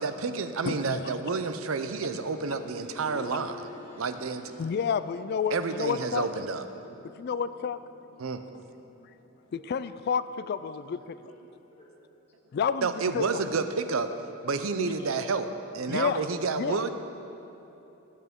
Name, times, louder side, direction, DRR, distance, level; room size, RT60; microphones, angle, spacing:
voice 1, 0.0-3.7 4.0-4.5 5.5-6.7 8.2-8.4 12.8-14.1 14.4-16.9, right 4 dB, 85° right, 9 dB, 0.6 m, -30 dB
voice 2, 0.6-1.1 4.6-6.3 7.2-7.8 9.5-11.3 12.5-13.4 14.8-15.1 15.9-16.3 16.5-16.8, left 6 dB, 50° left, 14 dB, 0.3 m, -30 dB
sound 1, 1.0-11.8 12.1-12.2 13.1-13.2, left 2 dB, 90° left, 1.4 m, -50 dB
voice 3, 11.2-12.2 15.2-15.3, equal, 30° left, -4 dB, 1.5 m, -56 dB
17.0 x 8.3 x 3.7 m, 3.0 s
head